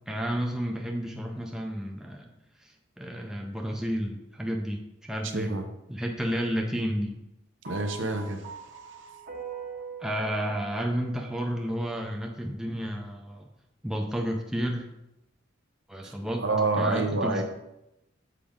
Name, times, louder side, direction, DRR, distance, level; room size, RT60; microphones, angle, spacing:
voice 1, 0.1-2.3 2.6-5.6 5.9-7.2 10.0-13.5 13.8-14.9 15.9-16.4 16.8-17.4, equal, 5° right, 0 dB, 0.5 m, -31 dB
voice 2, 5.3-5.6 7.7-8.5 16.0-16.1 16.4-17.4, right 2 dB, 70° right, 5 dB, 0.8 m, -27 dB
sound 1, 7.6-12.1, right 5 dB, 45° right, 1.2 m, -42 dB
7.0 x 4.9 x 3.7 m, 0.88 s
head